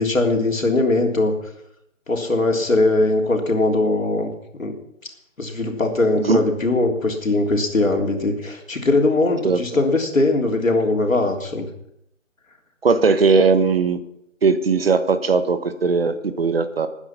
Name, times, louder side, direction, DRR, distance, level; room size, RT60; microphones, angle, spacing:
voice 1, 0.0-1.3 2.1-4.3 4.6-4.7 5.4-11.7, left 2 dB, 75° left, 2 dB, 3.4 m, -20 dB
voice 2, 12.8-14.0 14.4-16.9, right 4 dB, 45° right, 11 dB, 1.3 m, -18 dB
18.0 x 9.6 x 5.9 m, 0.78 s
figure-of-eight pair, 155°, 40 cm